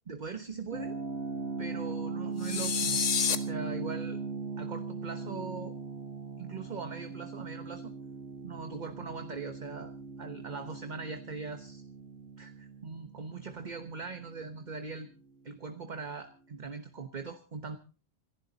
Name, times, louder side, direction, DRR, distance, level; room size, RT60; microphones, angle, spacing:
voice 1, 0.1-1.0 1.6-3.0 3.3-4.2 4.6-5.7 6.4-7.9 8.4-11.8 12.4-15.1 15.4-17.8, right 4 dB, 40° right, 8 dB, 1.2 m, -41 dB
sound 1, 0.7-15.5, right 4 dB, 60° right, 1.7 m, -39 dB
sound 2, 2.4-3.4, left 7 dB, 75° left, 1.5 m, -28 dB
28.0 x 11.5 x 4.1 m, 0.36 s
omnidirectional pair, 1.3 m